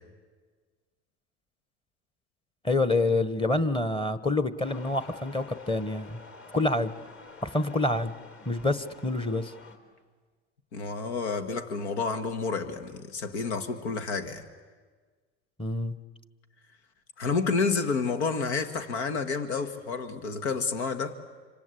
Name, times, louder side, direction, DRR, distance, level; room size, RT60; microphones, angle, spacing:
voice 1, 2.6-6.2 6.5-6.9 7.4-8.1 8.5-9.5 15.6-16.0, left 2 dB, 15° left, 12 dB, 1.2 m, -27 dB
sound 1, 4.6-9.8, left 3 dB, 40° left, 3.8 m, -49 dB
voice 2, 10.7-14.4 17.2-21.2, left 4 dB, 85° left, 9 dB, 1.8 m, -30 dB
27.0 x 25.5 x 8.4 m, 1.5 s
hypercardioid pair, 90°, 33 cm